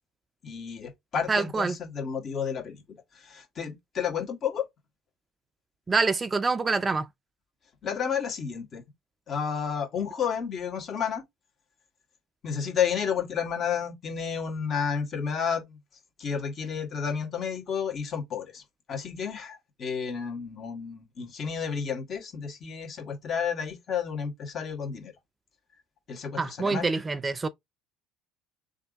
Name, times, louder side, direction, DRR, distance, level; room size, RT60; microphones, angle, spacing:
voice 1, 0.4-2.8 3.2-4.6 7.8-8.8 9.3-11.2 12.4-15.8 16.2-18.6 18.9-25.1 26.1-26.9, left 7 dB, 45° left, 1.4 m, -31 dB
voice 2, 1.3-1.8 5.9-7.1 26.4-27.5, right 4 dB, 25° right, 0.4 m, -26 dB
3.3 x 2.6 x 3.9 m
hypercardioid pair, 70°, 0 cm